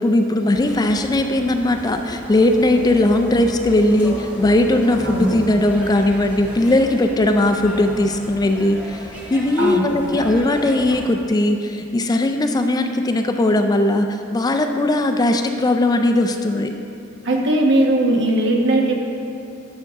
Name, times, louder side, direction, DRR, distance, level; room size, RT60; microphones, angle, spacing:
voice 1, 0.0-16.7, left 1 dB, 20° left, 6 dB, 0.3 m, -18 dB
sound 1, 0.5-11.1, equal, 5° right, 1.3 m, -35 dB
voice 2, 17.2-18.9, right 1 dB, 60° right, 0 dB, 1.1 m, -18 dB
11.5 x 6.4 x 3.6 m, 2.7 s
head